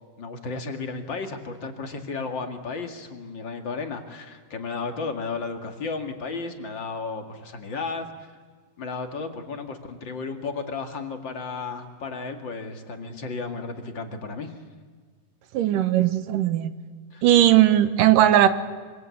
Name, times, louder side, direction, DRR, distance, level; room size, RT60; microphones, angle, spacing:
voice 1, 0.2-8.1 8.8-14.5 17.1-17.2, left 4 dB, 40° left, 5 dB, 2.3 m, -33 dB
voice 2, 15.5-16.7 17.2-18.5, right 12 dB, 90° right, 11 dB, 2.7 m, -18 dB
25.5 x 25.0 x 8.4 m, 1.5 s
omnidirectional pair, 3.7 m